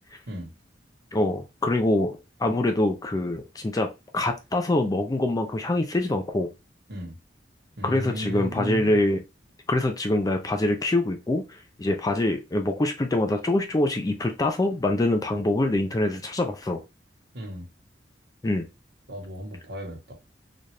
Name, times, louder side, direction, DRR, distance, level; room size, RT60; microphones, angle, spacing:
voice 1, 1.1-6.5 7.8-9.2 9.7-16.8 18.4-18.7, left 1 dB, 20° left, 0.4 m, -25 dB
voice 2, 7.8-8.9 17.3-17.6 19.1-20.1, equal, 65° right, 1.2 m, -34 dB
4.0 x 2.3 x 3.2 m
head